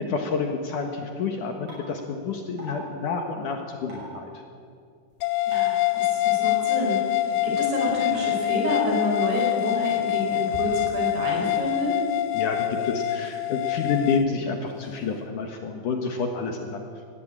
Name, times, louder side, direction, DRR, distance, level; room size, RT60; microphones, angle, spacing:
voice 1, 0.0-4.4 12.3-16.8, left 5 dB, 60° left, 3 dB, 2.4 m, -29 dB
sound 1, 1.7-1.8 2.6-2.7 3.9-4.1 5.5-5.8 6.8-6.9 8.1-8.2, right 1 dB, 50° right, 8.9 m, -41 dB
sound 2, 5.2-14.2, left 14 dB, 85° left, 2.9 m, -25 dB
voice 2, 5.5-12.0, equal, 70° right, -1 dB, 7.1 m, -29 dB
19.0 x 15.5 x 8.9 m, 2.2 s
omnidirectional pair, 4.8 m